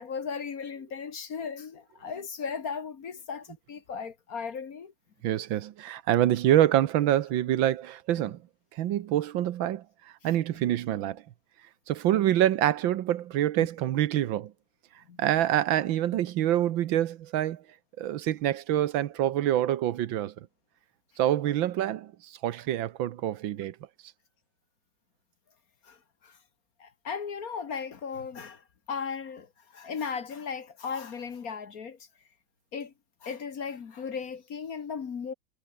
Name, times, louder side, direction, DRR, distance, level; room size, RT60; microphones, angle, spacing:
voice 1, 0.0-4.9 15.1-15.2 25.8-26.0 26.2-26.4 26.8-28.6 28.9-32.0 32.7-32.9 33.2-35.3, left 6 dB, 50° left, 1.7 m, -36 dB
voice 2, 5.2-8.4 8.7-9.8 10.2-11.2 11.9-14.5 15.2-17.6 18.0-20.3 21.2-23.8, right 12 dB, 75° right, 1.6 m, -26 dB
omnidirectional pair, 2.2 m